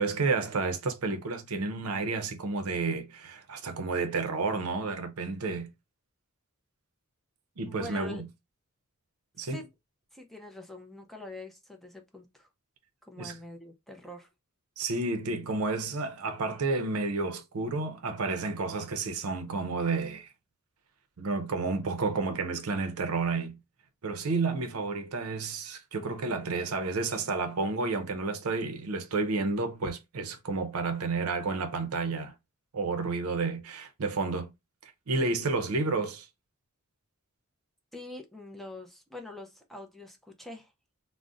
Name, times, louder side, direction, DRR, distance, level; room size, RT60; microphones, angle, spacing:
voice 1, 0.0-5.7 7.6-8.3 9.4-9.6 13.2-13.3 14.8-20.3 21.2-23.6 24.0-32.3 32.7-34.5 35.1-36.3, right 3 dB, 70° right, 0.6 m, -31 dB
voice 2, 7.7-8.2 9.4-9.7 10.1-12.5 13.0-14.3 37.9-40.7, left 2 dB, ahead, 0.4 m, -44 dB
2.4 x 2.0 x 3.7 m
head